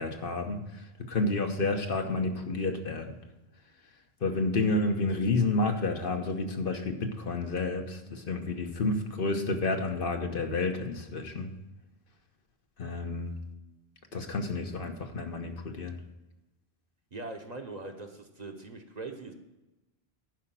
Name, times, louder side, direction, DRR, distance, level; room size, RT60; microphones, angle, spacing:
voice 1, 0.0-3.2 4.2-11.5 12.8-13.4 14.1-16.0, left 3 dB, 60° left, 4 dB, 1.1 m, -30 dB
voice 2, 17.1-19.3, right 3 dB, 40° right, 4 dB, 1.0 m, -41 dB
11.0 x 5.0 x 7.4 m, 1.0 s
omnidirectional pair, 1.1 m